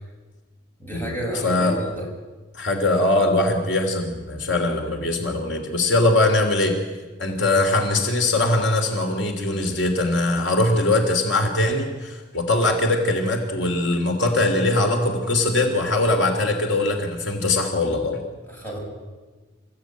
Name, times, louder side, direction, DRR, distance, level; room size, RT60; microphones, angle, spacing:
voice 1, 0.8-2.1 7.4-7.5 18.5-18.8, right 1 dB, 10° left, -2 dB, 7.1 m, -31 dB
voice 2, 1.4-1.8 2.5-6.8 7.2-18.2, left 2 dB, 75° left, 4 dB, 3.2 m, -21 dB
27.5 x 16.0 x 9.2 m, 1.3 s
head